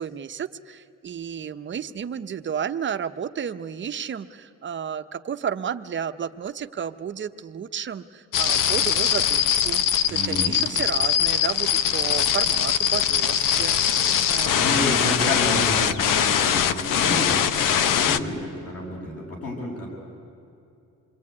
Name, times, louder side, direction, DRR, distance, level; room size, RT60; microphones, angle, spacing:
voice 1, 0.0-9.8 10.1-14.9, right 8 dB, 35° right, 9 dB, 0.8 m, -32 dB
sound 1, 8.3-18.2, left 9 dB, 85° left, 0.9 m, -22 dB
voice 2, 10.1-10.6 14.4-19.9, left 1 dB, 50° left, -1 dB, 7.4 m, -30 dB
27.0 x 22.5 x 9.7 m, 2.7 s
cardioid pair, 160°, 32 cm